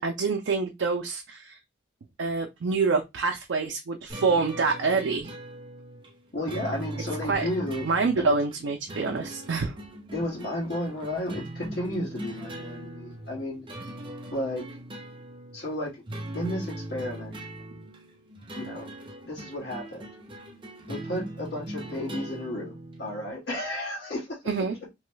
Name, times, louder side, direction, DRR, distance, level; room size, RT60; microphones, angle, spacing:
voice 1, 0.0-1.6 2.2-5.3 7.2-7.4 7.8-9.8 24.5-24.8, right 4 dB, 85° right, 0.5 m, -26 dB
sound 1, 4.1-23.3, right 1 dB, 25° right, 0.6 m, -40 dB
voice 2, 6.3-7.9 8.2-8.3 10.1-13.6 14.3-14.6 15.5-16.0 16.3-17.4 18.5-18.9 19.2-20.1 20.9-24.4, left 1 dB, 60° left, 1.5 m, -33 dB
3.1 x 2.3 x 3.1 m
head